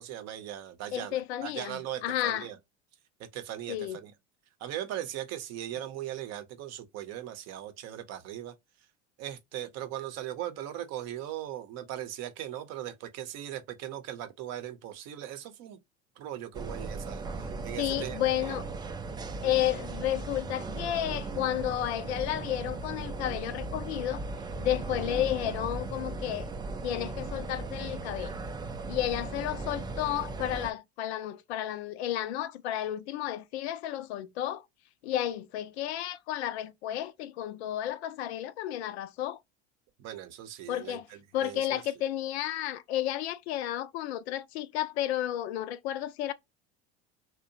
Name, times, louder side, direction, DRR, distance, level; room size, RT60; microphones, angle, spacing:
voice 1, 0.0-2.6 3.2-3.8 4.0-4.1 4.6-8.5 9.2-15.8 16.2-18.2 40.0-41.8, right 12 dB, 50° right, 0.6 m, -39 dB
voice 2, 0.9-2.5 3.7-4.0 17.8-18.7 19.4-24.2 24.6-26.5 26.8-28.3 28.9-34.7 35.0-39.4 40.7-41.1 41.3-46.3, left 12 dB, 75° left, 0.5 m, -32 dB
sound 1, 16.5-30.7, right 3 dB, 15° right, 0.3 m, -37 dB
2.7 x 2.1 x 2.6 m
hypercardioid pair, 80°, 32 cm